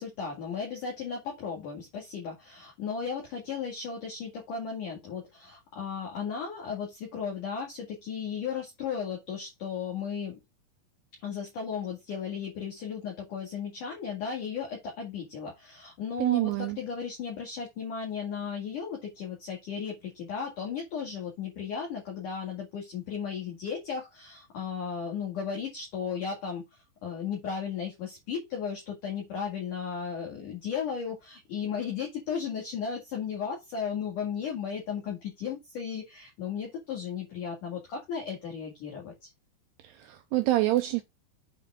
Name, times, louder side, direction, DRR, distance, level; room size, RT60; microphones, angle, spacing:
voice 1, 0.0-10.4 11.2-39.3, left 6 dB, 50° left, 3.2 m, -35 dB
voice 2, 16.2-16.8 39.8-41.0, right 17 dB, 85° right, 2.4 m, -26 dB
8.4 x 5.3 x 3.6 m
omnidirectional pair, 5.4 m